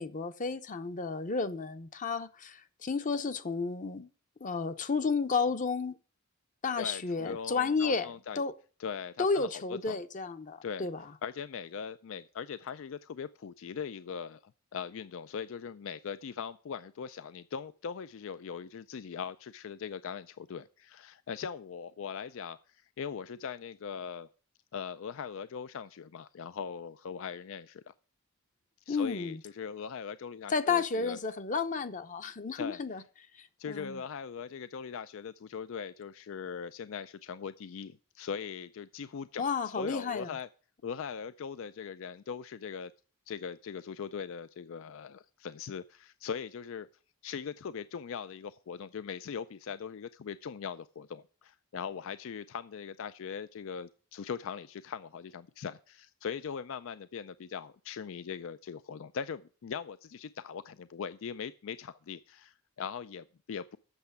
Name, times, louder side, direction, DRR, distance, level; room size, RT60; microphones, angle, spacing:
voice 1, 0.0-4.1 4.4-6.0 6.6-8.1 8.4-8.5 9.2-11.0 28.9-29.4 30.5-33.0 33.4-34.0 39.4-40.3, left 4 dB, 35° left, 0.7 m, -32 dB
voice 2, 6.8-8.4 8.8-10.0 10.6-10.9 11.2-14.4 14.7-24.3 24.7-27.9 28.9-31.2 32.5-32.8 33.6-40.5 40.8-42.9 43.3-46.9 47.2-63.8, left 6 dB, 60° left, 0.4 m, -40 dB
8.1 x 6.6 x 8.2 m
head